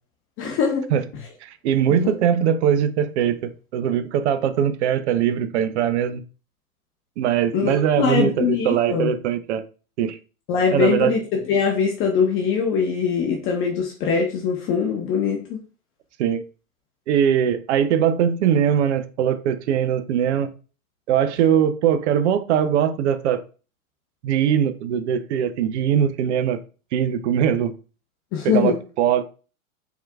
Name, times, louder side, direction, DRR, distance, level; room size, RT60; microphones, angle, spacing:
voice 1, 0.4-0.9 1.9-2.1 7.5-9.1 10.5-15.6 28.3-28.7, left 6 dB, 30° left, 0.9 m, -22 dB
voice 2, 1.4-6.2 7.2-9.6 10.0-10.2 10.7-11.1 16.2-16.4 17.1-20.5 21.1-23.4 24.2-26.6 26.9-27.7 28.4-29.2, right 9 dB, 50° right, 0.6 m, -21 dB
4.5 x 3.6 x 2.3 m
hypercardioid pair, 115°, 44 cm